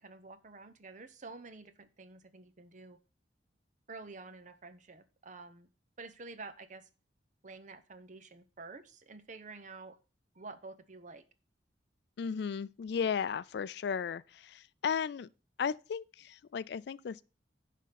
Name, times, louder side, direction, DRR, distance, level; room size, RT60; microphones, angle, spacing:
voice 1, 0.0-3.0 3.9-5.7 6.0-6.9 7.4-10.0 10.3-11.2, right 3 dB, 45° right, 0.7 m, -49 dB
voice 2, 12.2-15.3 15.6-17.2, left 6 dB, 60° left, 0.3 m, -35 dB
11.0 x 3.7 x 5.7 m
head